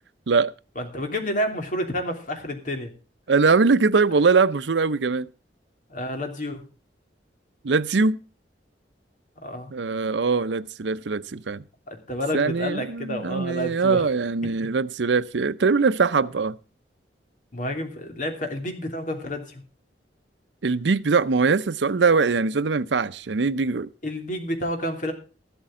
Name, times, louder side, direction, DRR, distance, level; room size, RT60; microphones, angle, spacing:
voice 1, 0.7-2.9 5.9-6.6 9.4-9.7 11.9-14.1 17.5-19.6 24.0-25.1, equal, 45° left, 3.0 m, -29 dB
voice 2, 3.3-5.3 7.6-8.2 9.7-11.6 12.3-16.6 20.6-23.9, right 4 dB, 90° right, 0.6 m, -22 dB
14.0 x 12.5 x 3.7 m
head